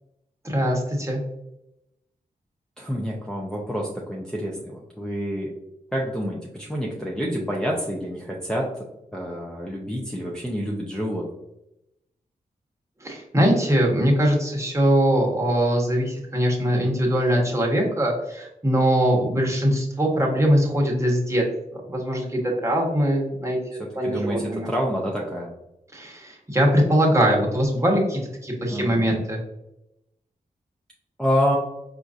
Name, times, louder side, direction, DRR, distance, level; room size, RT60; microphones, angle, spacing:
voice 1, 0.4-1.2 13.0-21.4 21.9-24.7 25.9-29.4, equal, 20° right, -2 dB, 1.1 m, -22 dB
voice 2, 2.8-5.5 5.9-8.7 9.1-11.3 23.8-25.5 28.7-29.1 31.2-31.6, equal, 5° left, -4 dB, 0.5 m, -28 dB
4.4 x 2.5 x 2.5 m, 0.87 s
cardioid pair, 75°, 15 cm